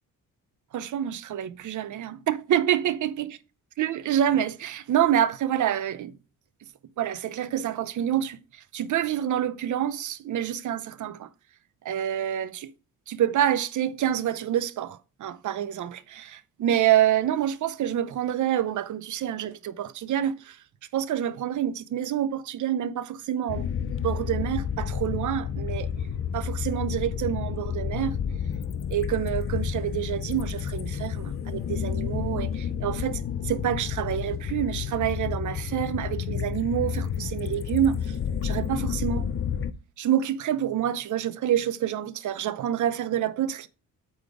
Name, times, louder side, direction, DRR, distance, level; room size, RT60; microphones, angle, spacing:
voice 1, 0.7-3.4 3.8-6.1 7.0-11.3 11.8-12.7 13.1-20.6 20.9-23.7 24.0-25.9 26.3-28.1 28.9-38.2 38.4-39.3 40.0-43.7, right 10 dB, 55° right, 0.7 m, -27 dB
sound 1, 23.5-39.7, left 8 dB, 40° left, 0.5 m, -30 dB
8.5 x 4.1 x 4.8 m
wide cardioid pair, 170°, 35 cm